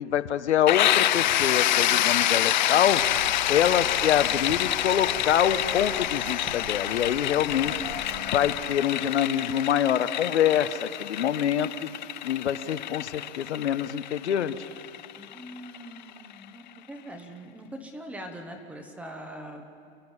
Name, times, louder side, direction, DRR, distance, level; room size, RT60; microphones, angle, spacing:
voice 1, 0.0-3.0 3.4-7.8 8.3-11.9 12.2-14.7, left 10 dB, 80° left, 11 dB, 1.2 m, -25 dB
sound 1, 0.7-16.3, left 13 dB, 45° left, 0.5 m, -27 dB
sound 2, 2.8-8.6, right 5 dB, 30° right, 1.1 m, -43 dB
voice 2, 3.5-3.9 7.4-8.6 15.2-19.6, right 1 dB, 5° right, 5 dB, 0.8 m, -43 dB
28.5 x 11.0 x 9.9 m, 2.5 s
hypercardioid pair, 165°, 33 cm